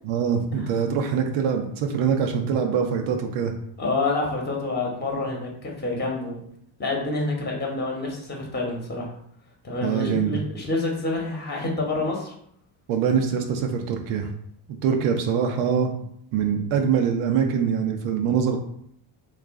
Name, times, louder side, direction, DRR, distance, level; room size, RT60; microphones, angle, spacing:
voice 1, 0.1-3.5 9.8-10.4 12.9-14.3 14.8-15.9 16.3-18.6, right 7 dB, 90° right, 3 dB, 0.6 m, -23 dB
voice 2, 3.8-6.4 6.8-9.1 9.6-12.3, left 2 dB, 20° left, -1 dB, 0.9 m, -27 dB
3.0 x 2.4 x 3.5 m, 0.69 s
cardioid pair, 100°, 48 cm